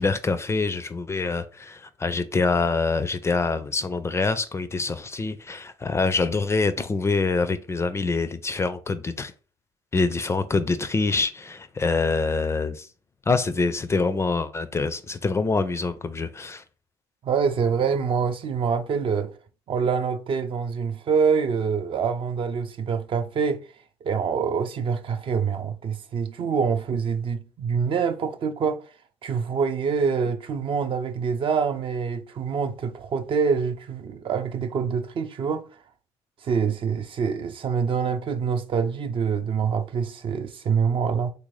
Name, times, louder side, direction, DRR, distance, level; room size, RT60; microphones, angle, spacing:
voice 1, 0.0-9.3 9.9-12.9 13.3-16.6, left 3 dB, 25° left, 0.4 m, -25 dB
voice 2, 17.2-19.3 19.7-23.6 24.0-28.8 29.2-35.7 36.4-41.3, right 6 dB, 50° right, 0.5 m, -25 dB
3.4 x 2.6 x 3.1 m
supercardioid pair, 70°, 12 cm